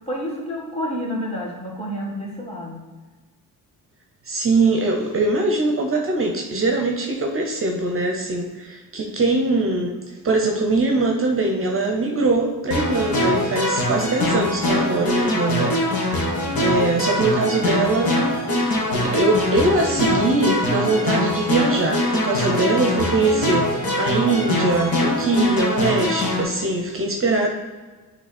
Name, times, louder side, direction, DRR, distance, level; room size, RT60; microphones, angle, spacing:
voice 1, 0.1-2.8, equal, 20° left, -3 dB, 1.8 m, -29 dB
voice 2, 4.2-10.0 10.2-16.3 16.6-18.2 18.9-27.5, right 2 dB, 40° right, 2 dB, 0.7 m, -22 dB
sound 1, 12.7-26.4, left 1 dB, 90° left, 1.6 m, -23 dB
9.1 x 3.3 x 4.2 m, 1.3 s
cardioid pair, 130°, 35 cm